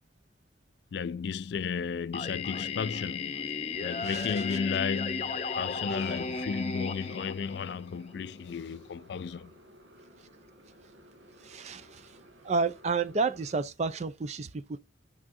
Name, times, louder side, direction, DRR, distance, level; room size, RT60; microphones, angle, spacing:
voice 1, 0.9-3.4 3.8-9.5, left 6 dB, 60° left, 0.4 m, -34 dB
Singing, 2.1-8.1, left 4 dB, 35° left, 0.7 m, -35 dB
Motorcycle, 3.9-13.6, equal, 80° right, 1.6 m, -57 dB
voice 2, 4.0-4.6 11.4-12.2 12.4-14.8, right 4 dB, 35° right, 0.4 m, -31 dB
9.8 x 6.1 x 2.5 m
head